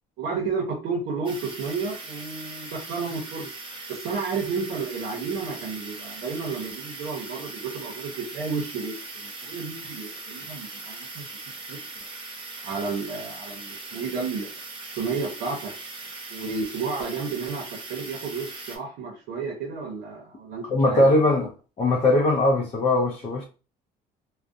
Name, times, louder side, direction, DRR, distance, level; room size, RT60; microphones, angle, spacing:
voice 1, 0.2-3.5 3.9-11.2 11.7-11.8 12.6-14.5 14.8-15.7 16.3-21.1, right 4 dB, 85° right, 0.7 m, -32 dB
sound 1, 1.2-18.8, right 3 dB, 30° right, 0.7 m, -40 dB
voice 2, 20.7-21.5 21.8-23.4, left 2 dB, 35° left, 0.5 m, -20 dB
2.4 x 2.1 x 2.5 m
cardioid pair, 110°, 17 cm